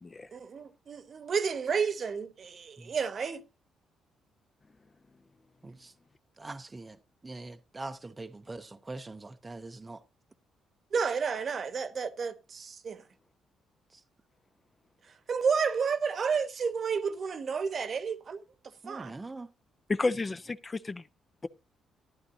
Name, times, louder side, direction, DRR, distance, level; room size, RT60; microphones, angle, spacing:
voice 1, 0.3-3.4 10.9-13.0 15.3-18.4 18.9-19.1, right 6 dB, 50° right, 1.0 m, -31 dB
voice 2, 5.6-5.9 6.4-10.0 13.9-14.0 18.8-19.5, right 2 dB, 20° right, 0.6 m, -43 dB
voice 3, 19.9-21.0, left 3 dB, 25° left, 0.5 m, -31 dB
14.0 x 11.0 x 2.7 m
cardioid pair, 90°, 0 cm